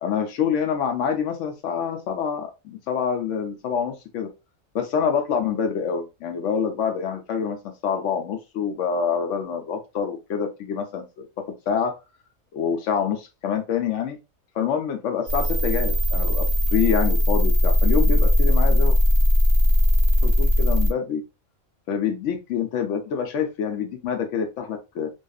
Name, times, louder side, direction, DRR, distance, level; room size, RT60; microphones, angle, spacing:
voice 1, 0.0-4.3 4.7-7.6 7.8-11.9 12.5-14.2 14.5-19.0 20.2-21.2 21.9-25.1, left 7 dB, 70° left, 5 dB, 0.8 m, -26 dB
sound 1, 15.3-20.9, left 1 dB, 40° right, 0.8 m, -19 dB
2.6 x 2.3 x 2.2 m, 0.26 s
omnidirectional pair, 1.5 m